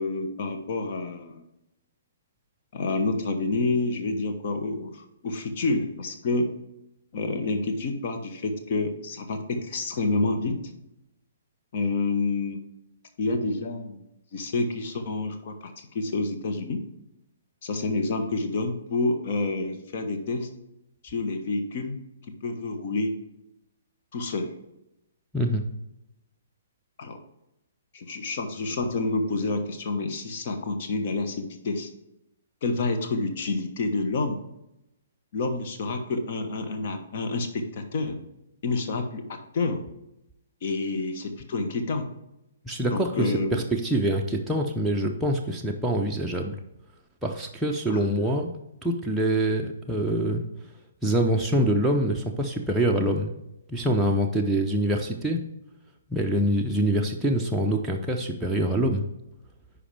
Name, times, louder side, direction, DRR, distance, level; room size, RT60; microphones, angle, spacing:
voice 1, 0.0-1.4 2.7-6.5 7.1-10.6 11.7-12.6 13.2-14.0 14.3-16.8 17.6-20.5 21.0-22.0 22.4-23.1 24.1-24.5 27.0-27.2 27.9-31.9 32.6-34.4 35.3-38.2 38.6-39.8 40.6-42.1 42.9-43.6 47.9-48.0, left 3 dB, 45° left, 6 dB, 1.1 m, -28 dB
voice 2, 42.6-46.6 47.2-48.5 48.8-50.4 51.0-53.3 53.7-55.4 56.1-59.0, right 1 dB, 5° right, -2 dB, 0.6 m, -25 dB
9.8 x 5.0 x 3.3 m, 0.89 s
figure-of-eight pair, 120°, 0 cm